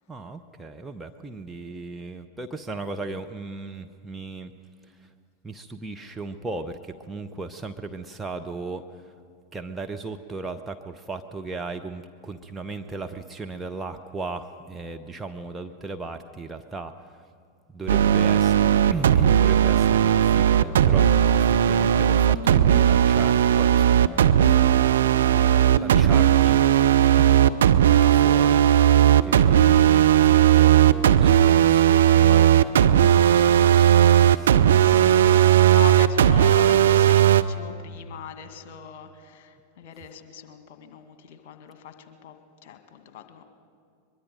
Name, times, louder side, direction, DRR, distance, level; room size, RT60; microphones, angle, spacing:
voice 1, 0.1-4.5 5.4-8.8 9.5-16.9 17.7-21.1 21.3-25.0 25.3-26.6, right 3 dB, 10° right, 4 dB, 0.8 m, -37 dB
sound 1, 17.9-37.4, right 10 dB, 60° right, 0.6 m, -17 dB
voice 2, 25.9-26.5 34.8-42.4 42.6-43.4, left 9 dB, 45° left, 7 dB, 1.9 m, -40 dB
23.0 x 22.0 x 5.3 m, 2.1 s
figure-of-eight pair, 90°, 0 cm